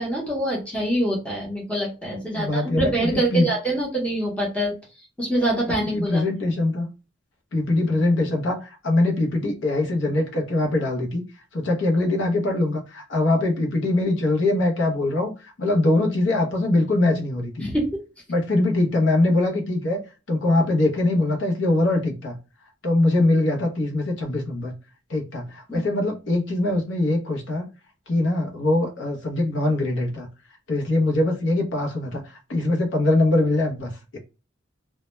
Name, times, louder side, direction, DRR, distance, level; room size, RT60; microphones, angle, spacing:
voice 1, 0.0-4.8 5.2-6.2 17.6-17.9 25.7-25.8, right 1 dB, 5° left, -3 dB, 0.7 m, -25 dB
voice 2, 2.3-3.5 5.9-6.9 7.5-11.2 11.5-15.3 15.6-17.7 18.3-20.0 20.3-22.4 22.8-24.7 25.1-27.6 28.1-30.3 30.7-34.2, left 2 dB, 65° left, 1 dB, 0.6 m, -22 dB
2.1 x 2.1 x 2.9 m, 0.31 s
head